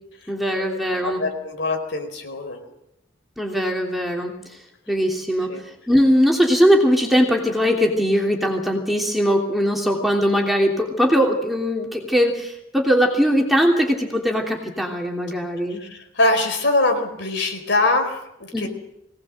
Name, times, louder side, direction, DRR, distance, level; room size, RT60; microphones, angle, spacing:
voice 1, 0.3-1.2 3.4-4.4 4.9-5.5 5.9-15.8 18.5-18.7, equal, ahead, 0 dB, 3.0 m, -20 dB
voice 2, 1.0-2.6 5.5-5.6 15.7-18.7, left 2 dB, 60° left, 5 dB, 4.7 m, -23 dB
23.5 x 18.5 x 7.8 m, 0.84 s
head